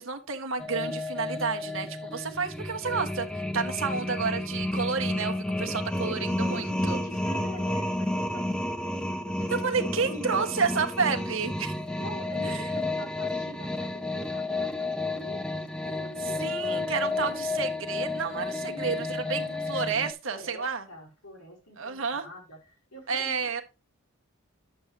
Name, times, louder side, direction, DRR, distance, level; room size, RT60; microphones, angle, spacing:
voice 1, 0.0-7.0 9.5-11.8 12.4-12.7 16.2-20.9 21.8-22.3 23.1-23.6, right 5 dB, 65° right, 1.2 m, -30 dB
sound 1, 0.6-20.1, left 2 dB, 5° left, 0.6 m, -31 dB
voice 2, 6.4-9.5 9.8-10.3 12.0-17.2 18.6-19.7 20.2-23.3, left 1 dB, 85° left, 4.6 m, -45 dB
10.5 x 7.0 x 3.3 m
head